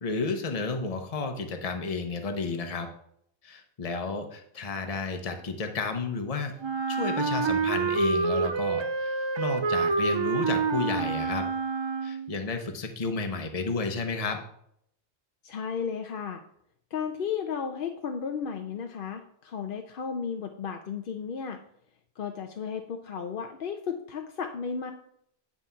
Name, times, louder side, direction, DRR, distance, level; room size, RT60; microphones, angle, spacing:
voice 1, 0.0-2.9 3.4-6.5 6.9-11.5 12.0-14.4, left 3 dB, 35° left, 5 dB, 1.0 m, -32 dB
Wind instrument woodwind instrument, 6.6-12.4, right 4 dB, 50° right, 0.3 m, -27 dB
voice 2, 15.4-16.4 16.9-21.6 22.2-24.9, left 6 dB, 65° left, 5 dB, 0.8 m, -34 dB
9.6 x 4.3 x 5.6 m, 0.69 s
omnidirectional pair, 1.0 m